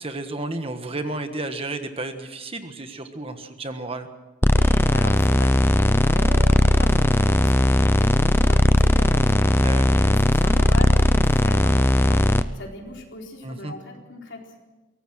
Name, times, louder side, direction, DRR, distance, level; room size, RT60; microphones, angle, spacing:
voice 1, 0.0-4.1 9.6-9.9 13.4-13.7, right 2 dB, 30° right, 8 dB, 1.4 m, -32 dB
sound 1, 4.4-12.4, left 1 dB, 10° left, 0.6 m, -18 dB
sound 2, 4.5-12.3, right 1 dB, 70° right, 5.1 m, -45 dB
voice 2, 4.6-14.6, left 2 dB, 65° left, 0 dB, 4.2 m, -39 dB
23.0 x 18.0 x 6.4 m, 1.2 s
head